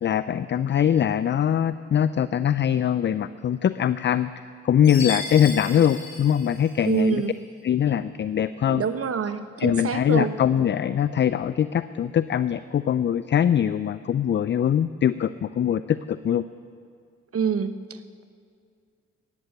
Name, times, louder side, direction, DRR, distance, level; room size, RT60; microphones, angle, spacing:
voice 1, 0.0-4.3 4.6-7.2 7.6-8.8 9.6-16.4, left 9 dB, 35° left, 14 dB, 0.4 m, -22 dB
Chime, 4.8-7.2, left 3 dB, 50° left, 4.5 m, -35 dB
voice 2, 6.8-7.4 8.7-10.4 17.3-18.2, right 6 dB, 45° right, 11 dB, 1.0 m, -26 dB
14.5 x 10.5 x 7.9 m, 2.2 s
hypercardioid pair, 45°, 31 cm